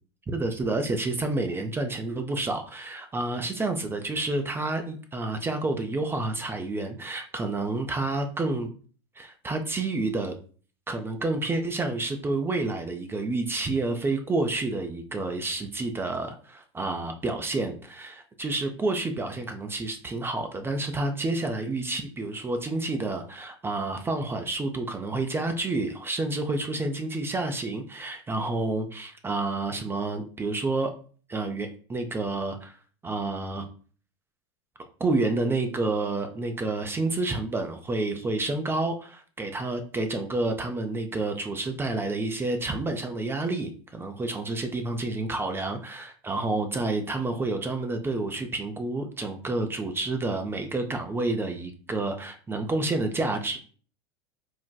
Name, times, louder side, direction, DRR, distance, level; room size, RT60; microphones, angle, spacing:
voice 1, 0.3-8.7 9.2-10.3 10.9-30.9 31.3-32.8 33.0-33.7 35.0-53.6, right 2 dB, 15° right, 5 dB, 0.4 m, -29 dB
4.0 x 2.1 x 2.2 m, 0.41 s
hypercardioid pair, 95°, 15 cm